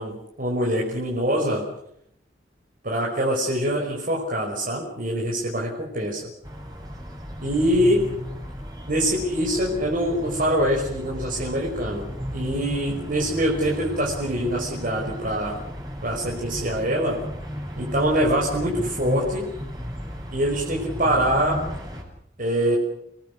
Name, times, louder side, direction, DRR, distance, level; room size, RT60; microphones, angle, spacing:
voice 1, 0.0-1.7 2.8-6.3 7.4-8.2 8.9-15.6 16.0-17.2 17.8-19.5 20.3-21.6 22.4-22.8, equal, 50° right, -2 dB, 5.6 m, -24 dB
sound 1, 6.4-22.0, equal, 20° right, 7.7 m, -34 dB
30.0 x 19.5 x 6.6 m, 0.70 s
head